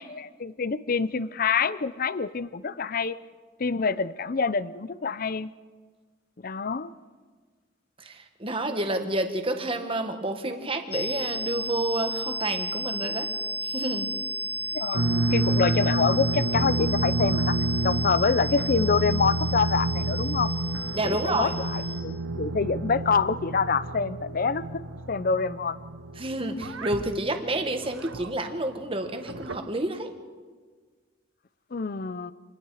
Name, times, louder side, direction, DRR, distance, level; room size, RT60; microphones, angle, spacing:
voice 1, 0.0-3.2 3.6-5.5 6.4-6.9 14.7-15.0 15.3-17.6 17.8-20.5 21.0-24.8 25.1-25.8 31.7-32.3, left 5 dB, 45° left, 16 dB, 0.6 m, -26 dB
voice 2, 8.0-13.3 13.6-14.1 20.9-21.5 26.2-30.1, right 2 dB, 25° right, 6 dB, 1.6 m, -29 dB
sound 1, 10.9-22.0, right 1 dB, 30° left, 1.9 m, -33 dB
sound 2, 14.9-28.4 29.1-29.6, right 2 dB, 85° right, 1.2 m, -29 dB
27.0 x 20.5 x 4.9 m, 1.5 s
head